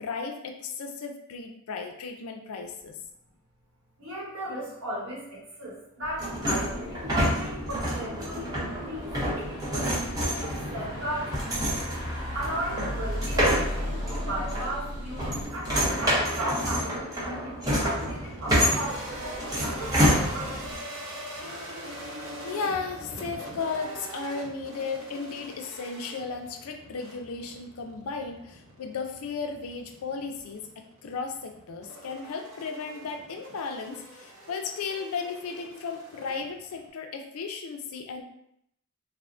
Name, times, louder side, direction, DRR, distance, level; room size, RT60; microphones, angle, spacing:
voice 1, 0.0-3.0 22.4-38.2, left 4 dB, 75° left, 4 dB, 0.4 m, -35 dB
voice 2, 4.0-10.0 10.4-11.8 12.3-20.5, right 1 dB, 75° right, -5 dB, 1.1 m, -36 dB
sound 1, 6.0-15.5, equal, 15° left, 1.0 m, -37 dB
sound 2, 6.2-20.8, equal, 15° right, 0.6 m, -28 dB
sound 3, 17.7-36.9, equal, 60° right, 0.7 m, -43 dB
3.4 x 2.0 x 2.5 m, 0.74 s
head